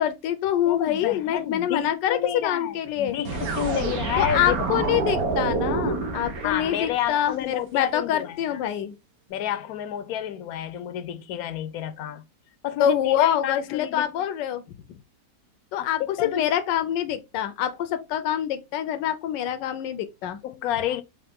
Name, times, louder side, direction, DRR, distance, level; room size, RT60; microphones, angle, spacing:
voice 1, 0.0-3.2 4.2-8.9 12.8-14.6 15.7-16.0 16.3-20.4, left 10 dB, 90° left, 1.3 m, -25 dB
voice 2, 0.7-4.8 6.4-8.6 9.3-12.2 12.6-14.3 15.8-16.4 20.4-21.0, left 11 dB, 70° left, 0.9 m, -30 dB
sound 1, 3.2-7.2, right 3 dB, 60° right, 1.4 m, -28 dB
4.9 x 2.8 x 3.5 m
omnidirectional pair, 1.8 m